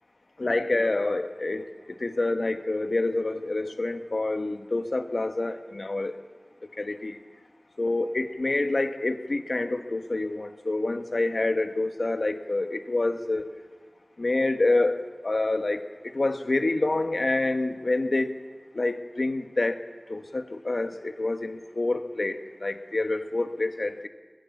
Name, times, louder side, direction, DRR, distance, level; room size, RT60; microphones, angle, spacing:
voice 1, 0.4-6.1 6.8-7.2 7.8-13.5 14.2-18.4 18.7-19.8 20.1-24.1, left 2 dB, 70° left, 7 dB, 1.3 m, -27 dB
23.5 x 20.0 x 7.3 m, 1.5 s
wide cardioid pair, 55°, 0 cm